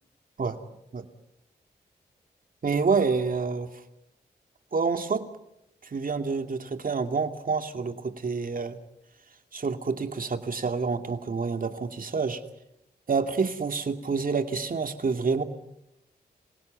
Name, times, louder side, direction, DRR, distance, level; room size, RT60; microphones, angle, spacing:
voice 1, 2.6-3.7 4.7-5.3 5.8-8.8 9.5-12.4 13.1-15.4, right 4 dB, 55° right, 7 dB, 2.5 m, -28 dB
28.0 x 17.0 x 9.5 m, 0.86 s
supercardioid pair, 45°, 17 cm